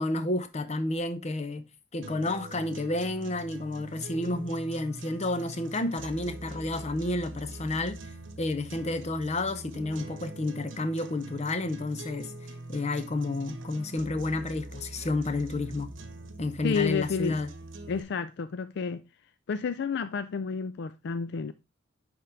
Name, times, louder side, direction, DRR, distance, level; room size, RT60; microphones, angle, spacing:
voice 1, 0.0-1.6 1.9-8.0 8.4-12.3 12.7-15.9 16.4-17.5, left 2 dB, 35° left, 0.7 m, -30 dB
sound 1, 2.0-18.0, right 2 dB, 80° right, 0.9 m, -43 dB
voice 2, 16.6-17.4 17.9-19.0 19.5-21.5, left 5 dB, 60° left, 0.4 m, -30 dB
10.0 x 3.7 x 3.3 m
head